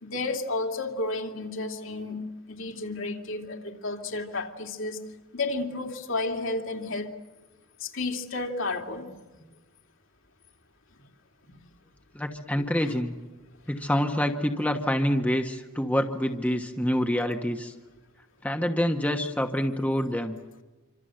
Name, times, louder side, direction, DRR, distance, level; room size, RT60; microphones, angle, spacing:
voice 1, 0.0-5.0 5.3-7.1 7.8-9.4 11.5-11.6 12.8-12.9, left 2 dB, 60° left, 3 dB, 2.8 m, -32 dB
voice 2, 12.1-13.1 13.7-17.7 18.4-20.4, equal, 5° left, 4 dB, 1.2 m, -26 dB
26.5 x 26.0 x 7.8 m, 1.2 s
head